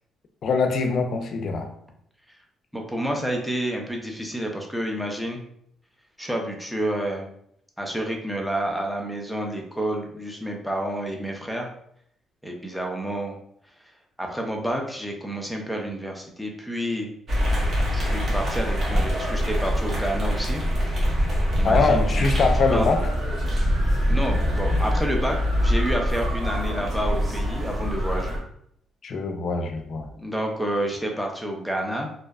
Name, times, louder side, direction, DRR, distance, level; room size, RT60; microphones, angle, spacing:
voice 1, 0.4-1.7 21.6-23.1 29.0-30.1, left 4 dB, 60° left, 5 dB, 0.4 m, -23 dB
voice 2, 2.7-5.4 6.2-7.3 7.8-11.7 12.4-13.4 14.2-17.1 17.9-20.6 21.6-22.9 24.1-28.4 30.1-32.2, right 1 dB, ahead, 1 dB, 0.5 m, -29 dB
sound 1, 17.3-28.4, equal, 45° right, 0.8 m, -24 dB
2.6 x 2.1 x 2.3 m, 0.70 s
cardioid pair, 90°, 0 cm